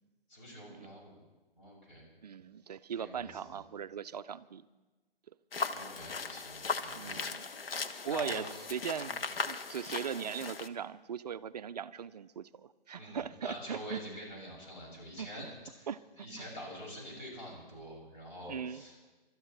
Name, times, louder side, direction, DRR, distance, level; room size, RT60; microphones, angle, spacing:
voice 1, 0.3-1.2 1.6-2.1 3.0-3.6 5.7-7.2 8.1-8.4 9.0-9.1 12.9-15.5 15.8-15.9 16.2-19.2, left 1 dB, 50° left, -3 dB, 6.9 m, -46 dB
voice 2, 2.2-4.7 7.0-7.5 8.0-14.0 15.2-15.5 15.9-16.5 18.5-18.8, right 7 dB, 45° right, 14 dB, 0.4 m, -39 dB
sound 1, 5.5-10.7, left 5 dB, 75° left, 0.9 m, -38 dB
27.5 x 13.0 x 3.2 m, 1.2 s
figure-of-eight pair, 140°, 29 cm